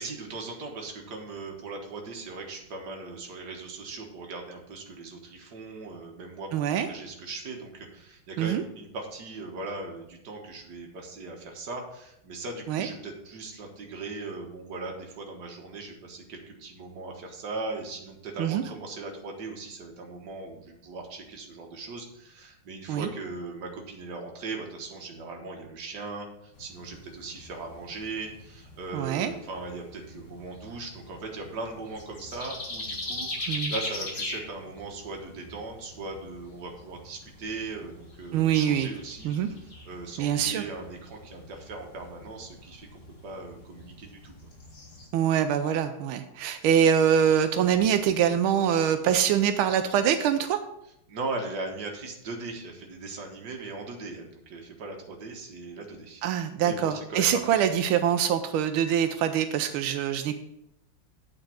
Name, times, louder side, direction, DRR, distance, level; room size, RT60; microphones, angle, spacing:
voice 1, 0.0-6.5 6.9-39.3 39.6-44.4 51.1-56.2 56.5-57.4, right 3 dB, 55° right, 2 dB, 1.9 m, -39 dB
voice 2, 6.5-6.9 8.4-8.6 12.7-12.9 18.4-18.6 22.9-23.1 28.9-29.3 33.5-33.7 38.3-38.9 39.2-39.5 40.2-40.6 45.1-50.6 56.2-60.3, right 9 dB, 90° right, 8 dB, 1.5 m, -24 dB
sound 1, 26.5-45.1, left 2 dB, 35° left, 1.9 m, -42 dB
8.8 x 4.7 x 6.2 m, 0.81 s
omnidirectional pair, 2.3 m